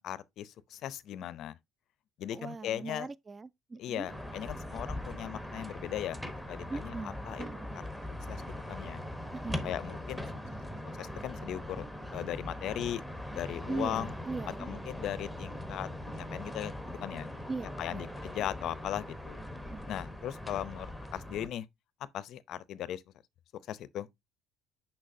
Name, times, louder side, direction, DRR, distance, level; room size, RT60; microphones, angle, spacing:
voice 1, 0.0-1.6 2.2-3.1 3.8-6.2 6.5-7.5 8.3-9.0 9.6-10.3 11.0-11.9 12.1-13.0 13.3-14.1 14.6-15.9 16.3-17.3 17.8-19.4 19.9-21.7 22.1-23.0 23.7-24.1, left 11 dB, 60° left, 0.5 m, -38 dB
voice 2, 2.3-4.1 6.7-7.8 9.3-9.7 13.7-15.0 17.5-18.0 19.6-19.9, right 3 dB, 20° right, 0.4 m, -40 dB
sound 1, 4.1-21.5, left 1 dB, ahead, 0.9 m, -41 dB
6.4 x 5.8 x 2.6 m
cardioid pair, 125°, 0 cm